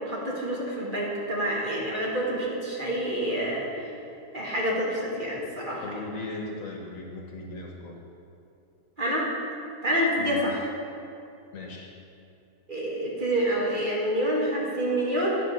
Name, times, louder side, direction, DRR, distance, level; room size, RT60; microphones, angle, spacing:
voice 1, 0.0-3.9 4.3-5.8 9.0-9.3 9.8-10.7 12.7-15.4, right 1 dB, 35° right, -4 dB, 1.6 m, -27 dB
voice 2, 5.8-8.0 10.2-10.4 11.5-11.9, left 2 dB, 60° left, 0 dB, 1.4 m, -38 dB
11.0 x 5.6 x 5.3 m, 2.6 s
omnidirectional pair, 1.7 m